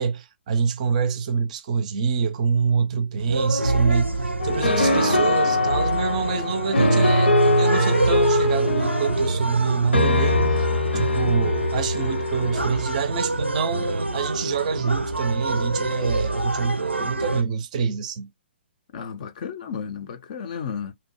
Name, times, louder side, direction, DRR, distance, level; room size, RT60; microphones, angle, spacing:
voice 1, 0.0-4.2 4.4-10.7 10.9-18.3, right 6 dB, 40° right, 0.5 m, -26 dB
sound 1, 3.2-17.4, right 2 dB, 90° right, 0.5 m, -27 dB
sound 2, 4.4-13.0, left 1 dB, 70° left, 0.7 m, -22 dB
voice 2, 18.9-20.9, left 7 dB, 40° left, 0.5 m, -33 dB
2.6 x 2.1 x 2.8 m
figure-of-eight pair, 125°, 6 cm